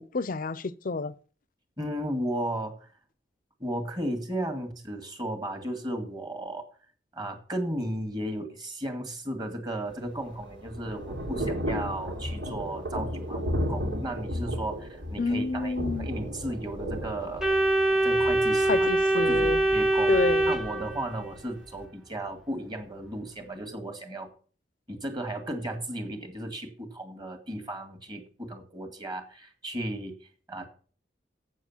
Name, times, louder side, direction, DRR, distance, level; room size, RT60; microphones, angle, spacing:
voice 1, 0.1-1.1 15.2-16.1 18.7-19.6 20.1-20.5, left 3 dB, 50° left, 0.5 m, -29 dB
voice 2, 1.8-2.9 3.6-6.6 7.1-17.5 18.0-20.2 20.5-24.3 24.9-30.2 30.5-30.7, right 1 dB, 25° right, 1.9 m, -35 dB
Thunder / Rain, 9.9-21.8, equal, 90° right, 2.9 m, -35 dB
Organ, 17.4-21.3, right 2 dB, ahead, 0.8 m, -24 dB
7.8 x 7.2 x 7.3 m
head